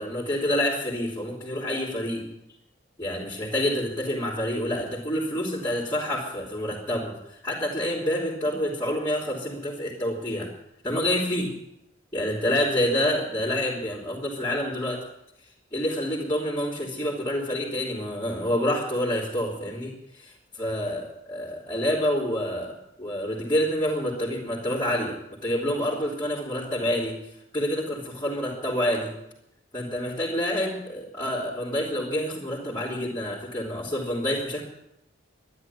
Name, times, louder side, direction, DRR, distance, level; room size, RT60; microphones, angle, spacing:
voice 1, 0.0-2.2 3.0-10.5 10.8-11.5 12.1-15.0 15.7-27.2 27.5-29.1 29.7-34.7, equal, 20° left, -7 dB, 3.1 m, -28 dB
12.5 x 11.0 x 9.5 m, 0.82 s
head